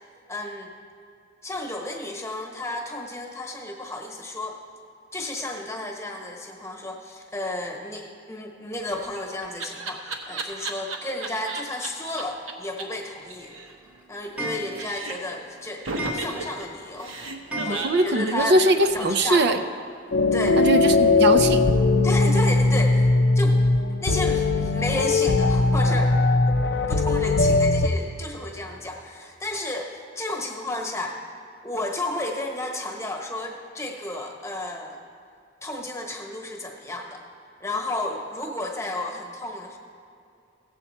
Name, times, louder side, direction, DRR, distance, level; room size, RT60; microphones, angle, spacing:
voice 1, 0.3-0.7 1.4-4.6 5.1-13.5 14.1-17.1 17.6-18.6 18.9-19.7 20.3-20.6 22.0-23.1 23.3-23.6 24.0-26.2 26.9-31.2 31.6-35.0 35.6-37.2 37.6-39.8, left 1 dB, 15° left, 1 dB, 1.2 m, -32 dB
Laughter, 8.8-11.9 12.2-12.3 12.5-12.6 12.8-12.9 13.1-14.4 14.7-15.3 15.8-19.6, right 3 dB, 90° right, 1.1 m, -34 dB
Clock, 13.4-18.5 18.8-18.9 19.1-19.2 19.4-19.5 20.7-20.8 21.4-21.5 22.0-22.1 22.6-22.7 23.3-23.4 23.9-24.0, equal, 5° right, 1.0 m, -37 dB
voice 2, 17.6-19.6 20.6-21.6, right 1 dB, 60° right, 8 dB, 0.5 m, -21 dB
sound 1, 20.1-27.9, left 3 dB, 60° left, 0.5 m, -20 dB
16.0 x 7.7 x 4.4 m, 2.5 s
head